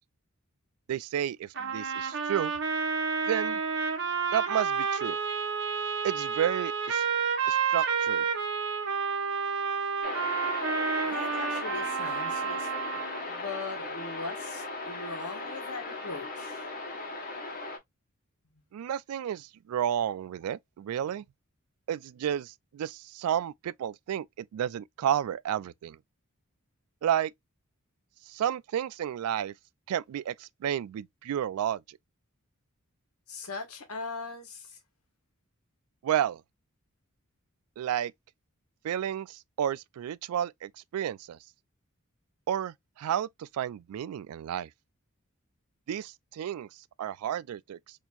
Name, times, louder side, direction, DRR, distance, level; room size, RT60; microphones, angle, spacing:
voice 1, 0.9-2.5 3.3-3.6 4.3-5.2 6.0-7.0 7.5-8.2 18.7-21.2 21.9-26.0 27.0-27.3 28.3-29.5 29.9-32.0 36.0-36.4 37.8-38.1 38.8-41.4 42.5-44.7 45.9-46.7 47.0-47.8, right 10 dB, 80° right, 0.3 m, -31 dB
sound 1, 1.6-13.2, right 6 dB, 55° right, 1.0 m, -30 dB
sound 2, 10.0-17.8, left 2 dB, 40° left, 1.2 m, -37 dB
voice 2, 11.0-16.7 33.3-34.8, left 3 dB, 85° left, 1.3 m, -40 dB
4.2 x 2.8 x 2.3 m
head